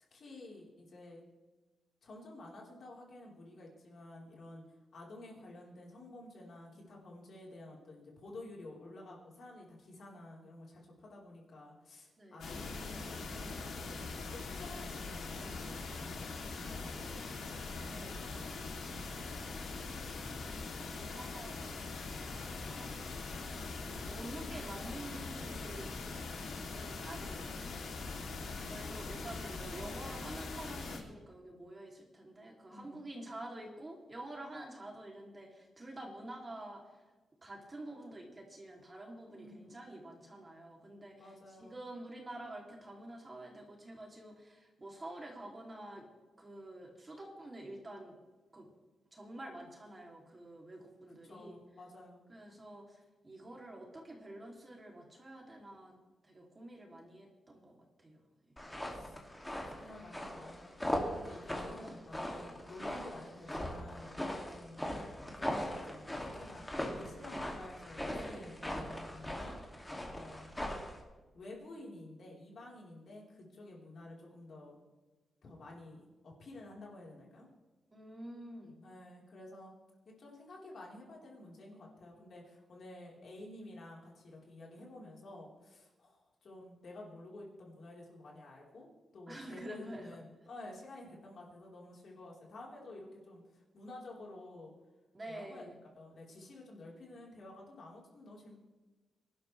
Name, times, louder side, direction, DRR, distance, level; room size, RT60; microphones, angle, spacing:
voice 1, 0.1-1.2 2.0-4.6 4.9-16.1 16.5-17.2 32.7-33.1 39.3-39.7 41.2-41.8 51.2-52.3 58.9-64.8 65.3-66.6 66.9-69.5 70.1-70.5 71.3-74.8 75.4-77.5 78.8-79.7 80.0-88.9 89.1-94.7 95.3-95.7 96.0-98.5, left 2 dB, 55° left, -3 dB, 4.3 m, -51 dB
sound 1, 12.4-31.0, left 3 dB, 80° left, 3.1 m, -42 dB
voice 2, 17.9-18.4 19.3-19.6 20.9-21.8 22.6-23.0 23.8-25.9 26.5-27.9 28.6-36.8 37.4-46.0 46.4-48.1 48.5-48.7 49.1-51.6 52.3-56.0 56.2-57.7 58.0-58.2 77.9-78.7 89.3-90.2 95.1-95.7, right 1 dB, 25° right, 0 dB, 3.1 m, -48 dB
sound 2, 58.6-71.0, left 1 dB, 10° left, 2.6 m, -40 dB
25.0 x 12.0 x 3.4 m, 1.2 s
wide cardioid pair, 135°, 0 cm